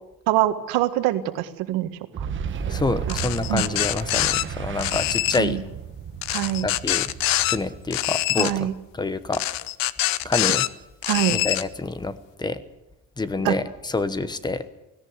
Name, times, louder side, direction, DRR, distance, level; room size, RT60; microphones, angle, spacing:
voice 1, 0.3-1.9 2.2-2.3 3.1-3.2 3.5-3.6 5.4-5.6 6.3-6.7 8.4-8.7 11.1-11.4 13.4-13.6, right 14 dB, 90° right, 10 dB, 1.8 m, -24 dB
Boom, 2.1-8.7, right 7 dB, 35° right, 1.5 m, -33 dB
voice 2, 2.7-5.6 6.6-7.1 7.4-9.4 10.2-10.7 11.3-12.6 13.2-14.6, left 3 dB, 10° left, 13 dB, 1.0 m, -27 dB
sound 1, 3.1-4.4 4.8-5.4 6.2-7.6 7.9-8.5 9.3-10.7 11.0-11.6, left 16 dB, 70° left, 0.9 m, -24 dB
17.5 x 17.0 x 9.6 m, 0.92 s
cardioid pair, 150°, 35 cm